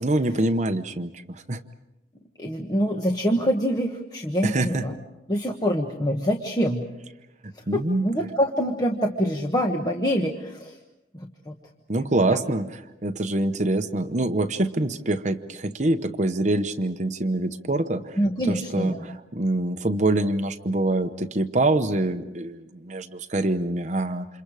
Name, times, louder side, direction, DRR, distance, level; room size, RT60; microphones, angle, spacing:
voice 1, 0.0-1.6 4.4-4.8 7.4-8.1 11.9-18.2 18.5-24.3, right 2 dB, 40° right, 8 dB, 0.9 m, -25 dB
voice 2, 2.4-5.0 5.3-6.8 7.5-10.8 11.1-11.5 12.3-12.4 18.2-19.1, equal, 20° left, 2 dB, 1.3 m, -25 dB
29.0 x 27.5 x 4.9 m, 0.95 s
head